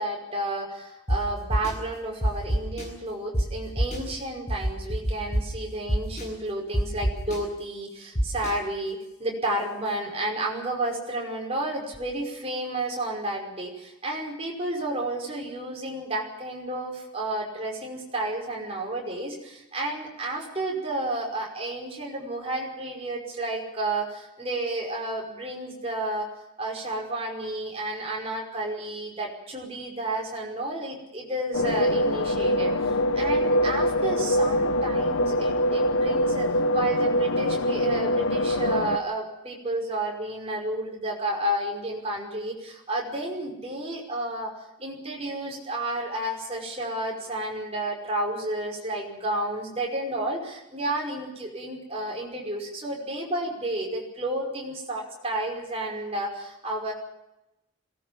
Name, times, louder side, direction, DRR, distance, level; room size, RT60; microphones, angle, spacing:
voice 1, 0.0-26.3 26.6-44.5 44.8-56.9, right 1 dB, 30° right, -1 dB, 5.5 m, -31 dB
sound 1, 1.1-1.2 1.5-1.7 2.2-2.8 3.3-3.4 3.8-4.0 4.5-5.4 5.9-6.2 6.7-7.4 8.1-8.5, equal, 35° left, 7.9 m, -24 dB
sound 2, 31.5-39.0, left 1 dB, 80° left, 1.0 m, -24 dB
22.5 x 19.0 x 7.2 m, 0.91 s
head